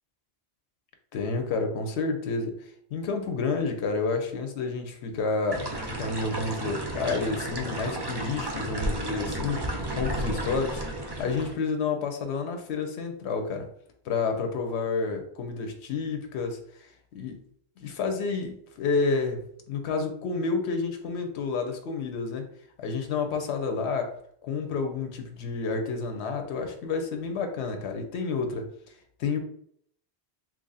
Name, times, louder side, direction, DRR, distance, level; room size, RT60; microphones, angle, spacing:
voice 1, 1.1-2.6 2.9-10.8 11.2-13.7 14.0-16.6 17.1-17.4 17.8-22.5 22.8-24.2 24.4-28.7 29.2-29.4, left 4 dB, 85° left, 5 dB, 0.9 m, -30 dB
sound 1, 5.5-11.5, right 1 dB, 35° right, 0.4 m, -33 dB
2.9 x 2.5 x 3.9 m, 0.66 s
omnidirectional pair, 1.1 m